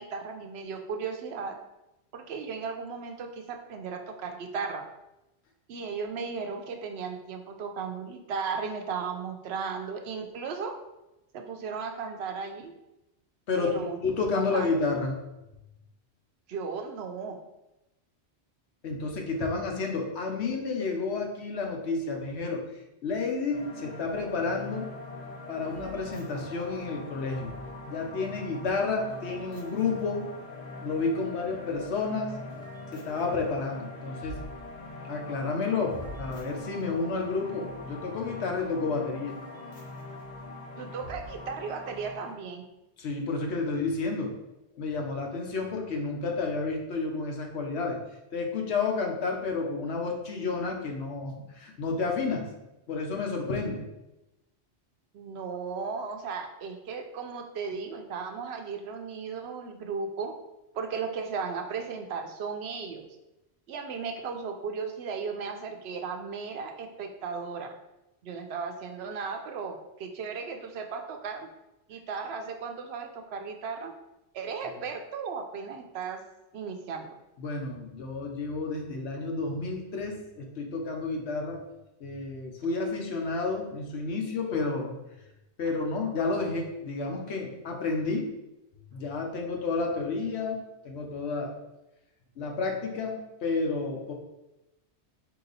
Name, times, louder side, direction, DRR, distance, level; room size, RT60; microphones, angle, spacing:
voice 1, 0.0-1.5 2.1-4.9 5.7-10.7 11.3-12.7 13.6-14.0 14.3-14.7 16.5-17.4 40.8-42.6 55.1-60.3 60.7-63.1 63.7-67.7 68.2-71.5 71.9-73.9 74.3-76.2 76.5-77.1, right 5 dB, 75° right, 5 dB, 0.8 m, -35 dB
voice 2, 13.5-15.2 18.8-22.6 23.0-24.9 25.5-27.5 27.9-30.3 30.8-32.3 32.9-34.4 35.1-39.4 43.0-44.3 44.8-48.0 48.3-52.5 52.9-53.8 77.4-81.6 82.0-84.9 85.6-88.3 88.9-91.6 92.4-94.1, left 4 dB, 75° left, 2 dB, 1.1 m, -31 dB
sound 1, 23.5-42.4, left 2 dB, 45° left, 0.8 m, -42 dB
4.8 x 2.9 x 3.9 m, 0.94 s
omnidirectional pair, 1.1 m